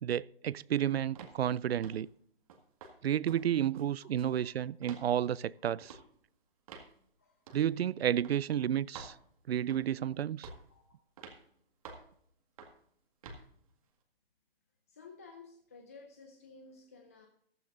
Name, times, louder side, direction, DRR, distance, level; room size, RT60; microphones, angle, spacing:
voice 1, 0.0-2.1 3.0-6.0 7.5-9.1 9.5-10.5, right 10 dB, 75° right, 0.5 m, -31 dB
sound 1, 1.2-1.4 1.8-2.1 2.5-3.0 3.3-3.4 3.7-4.4 4.8-5.1 5.8-6.0 6.7-6.9 7.5-7.7 8.2-8.4 8.9-9.2 9.7-10.0 10.4-10.7 11.2-11.4 11.8-12.1 12.6-12.8 13.2-13.4, right 5 dB, 35° right, 1.9 m, -49 dB
voice 2, 14.9-17.3, left 4 dB, 15° left, 0.5 m, -54 dB
15.0 x 13.0 x 2.6 m
hypercardioid pair, 160°, 31 cm